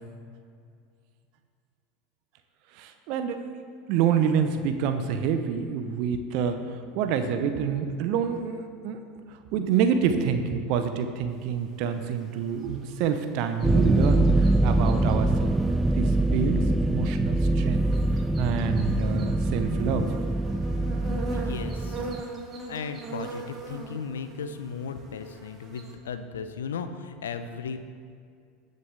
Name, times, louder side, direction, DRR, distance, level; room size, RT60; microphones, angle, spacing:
voice 1, 2.7-3.6 3.9-17.9 18.4-20.1, right 7 dB, 55° right, 8 dB, 0.8 m, -27 dB
sound 1, 11.3-25.9, right 3 dB, 30° right, 1.8 m, -42 dB
sound 2, 13.6-22.2, right 1 dB, 10° right, 0.3 m, -24 dB
voice 2, 21.3-22.1 22.7-27.8, left 6 dB, 75° left, 9 dB, 0.6 m, -36 dB
19.0 x 6.7 x 3.5 m, 2.3 s
figure-of-eight pair, 80°, 0 cm